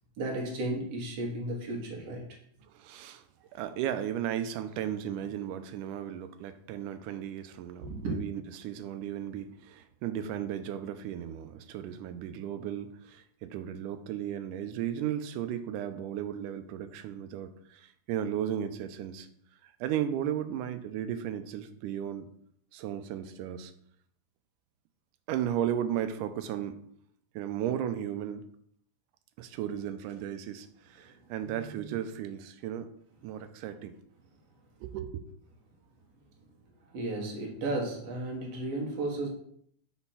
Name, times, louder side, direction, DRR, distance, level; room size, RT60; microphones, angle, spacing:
voice 1, 0.2-2.4 7.8-8.2 36.9-39.3, right 2 dB, 60° right, -1 dB, 2.3 m, -34 dB
voice 2, 2.6-3.2 3.5-19.3 19.6-22.3 22.7-23.7 25.3-26.8 27.4-28.5 29.4-32.9 33.2-34.0 34.8-35.2, right 10 dB, 85° right, 10 dB, 2.1 m, -35 dB
5.8 x 4.3 x 5.5 m, 0.67 s
omnidirectional pair, 3.6 m